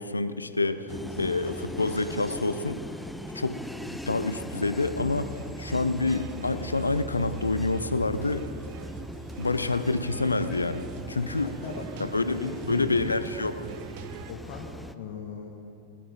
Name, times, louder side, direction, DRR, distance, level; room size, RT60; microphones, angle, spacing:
voice 1, 0.0-0.8 1.2-2.8 3.3-5.3 5.6-8.5 9.4-11.5 12.0-13.5, left 3 dB, 80° left, 12 dB, 0.6 m, -27 dB
voice 2, 0.6-1.5 2.0-2.4 9.8-9.9 11.4-11.9 12.2-13.2 14.3-15.5, left 5 dB, 45° left, 0 dB, 1.5 m, -40 dB
sound 1, 0.9-14.9, equal, ahead, 0.5 m, -39 dB
sound 2, 5.0-14.3, right 12 dB, 50° right, 0.5 m, -45 dB
18.0 x 10.0 x 4.9 m, 2.9 s
figure-of-eight pair, 90°, 0 cm